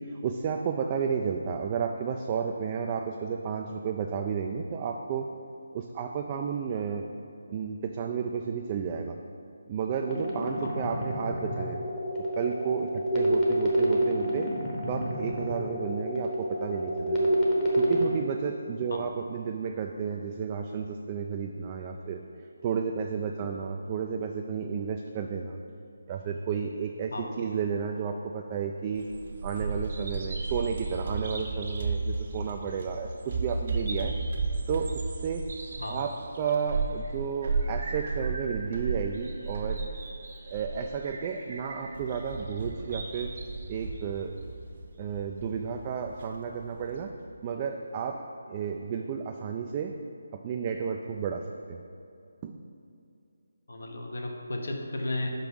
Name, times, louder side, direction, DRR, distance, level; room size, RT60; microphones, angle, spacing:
voice 1, 0.0-5.3 5.7-7.1 7.5-9.2 9.7-11.8 12.4-14.5 14.9-17.3 17.7-22.2 22.6-25.6 26.1-29.1 29.4-34.1 34.7-35.4 35.9-39.8 40.5-43.3 43.7-44.3 45.0-47.1 47.4-49.9 50.3-51.8 52.4-52.5, right 6 dB, 25° right, 3 dB, 0.3 m, -32 dB
sound 1, 10.1-18.1, right 1 dB, 20° left, 0.9 m, -28 dB
voice 2, 27.1-27.4 35.8-36.0 53.7-55.3, left 1 dB, 70° left, 1 dB, 1.0 m, -34 dB
Bird vocalization bird call bird song, 29.0-47.1, right 3 dB, 50° right, 0.9 m, -34 dB
5.2 x 4.8 x 6.2 m, 2.5 s
figure-of-eight pair, 160°, 0 cm